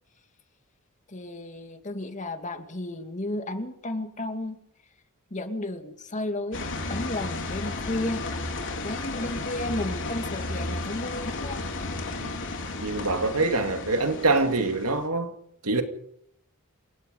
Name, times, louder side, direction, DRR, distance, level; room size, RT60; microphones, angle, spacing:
voice 1, 1.1-4.6 5.3-8.3 8.8-11.6, left 1 dB, 35° left, 2.2 m, -33 dB
sound 1, 6.5-15.1, left 2 dB, 60° left, 4.0 m, -33 dB
voice 2, 12.8-15.3 15.6-15.8, right 3 dB, 75° right, 2.7 m, -25 dB
28.5 x 17.0 x 5.5 m
head